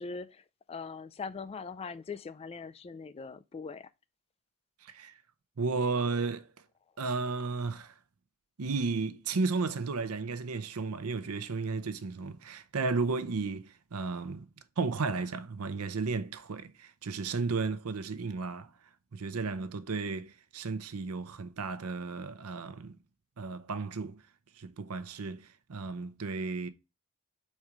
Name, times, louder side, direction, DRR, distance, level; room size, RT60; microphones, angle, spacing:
voice 1, 0.0-3.9, left 5 dB, 25° left, 0.3 m, -41 dB
voice 2, 4.8-5.1 5.6-6.5 7.0-7.9 8.6-14.4 14.8-18.7 19.1-23.0 23.4-24.2 24.6-26.7, right 4 dB, 80° right, 0.7 m, -33 dB
4.6 x 4.3 x 4.9 m
head